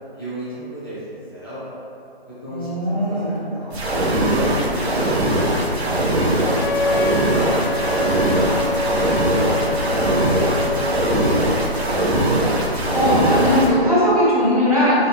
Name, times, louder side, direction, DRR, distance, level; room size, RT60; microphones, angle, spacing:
voice 1, 0.1-1.6 2.3-5.7 6.1-8.8 9.4-12.1, equal, 20° left, -14 dB, 0.8 m, -34 dB
voice 2, 2.5-3.4 12.9-15.1, equal, 35° right, -9 dB, 0.8 m, -18 dB
sound 1, 3.7-13.7, right 1 dB, 85° right, 0.9 m, -20 dB
Wind instrument woodwind instrument, 6.5-12.2, left 2 dB, 75° left, 1.0 m, -26 dB
sound 2, 6.6-12.4 13.1-13.2, left 1 dB, 55° left, 1.0 m, -36 dB
4.0 x 2.2 x 3.9 m, 2.7 s
hypercardioid pair, 180°, 31 cm